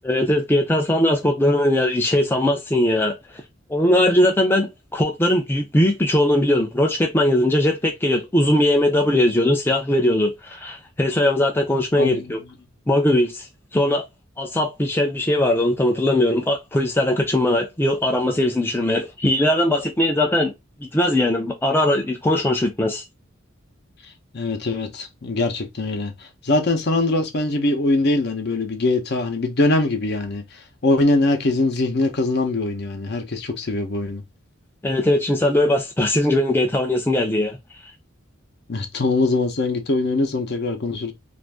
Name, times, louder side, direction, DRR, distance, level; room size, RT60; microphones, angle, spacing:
voice 1, 0.0-3.2 3.7-12.4 12.9-14.1 14.4-20.5 20.9-23.0 34.8-37.6, left 1 dB, 10° left, 0.4 m, -20 dB
voice 2, 24.3-30.4 30.8-34.2 38.7-41.1, left 2 dB, 55° left, 0.8 m, -22 dB
2.5 x 2.5 x 3.4 m
head